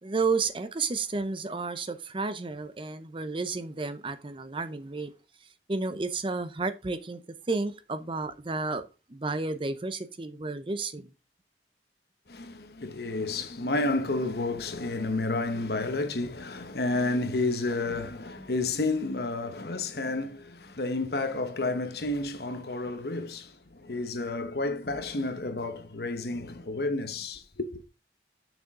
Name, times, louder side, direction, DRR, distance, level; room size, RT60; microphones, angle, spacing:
voice 1, 0.0-5.1 5.7-7.2 7.5-11.1, right 3 dB, 30° right, 0.6 m, -32 dB
voice 2, 12.3-27.7, left 2 dB, 60° left, 1.0 m, -31 dB
6.8 x 6.2 x 3.7 m
head